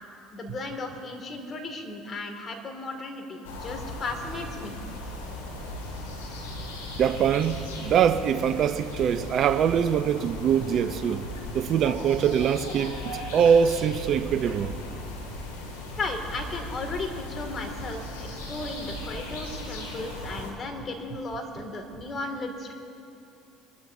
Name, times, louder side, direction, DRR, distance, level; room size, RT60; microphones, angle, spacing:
voice 1, 0.3-4.7 16.0-22.7, left 3 dB, 40° left, 2.2 m, -35 dB
sound 1, 3.4-20.5, left 1 dB, 85° left, 2.2 m, -37 dB
voice 2, 7.0-11.2 11.5-14.7, right 8 dB, 50° right, 0.6 m, -23 dB
24.0 x 12.5 x 2.7 m
hypercardioid pair, 75°, 0 cm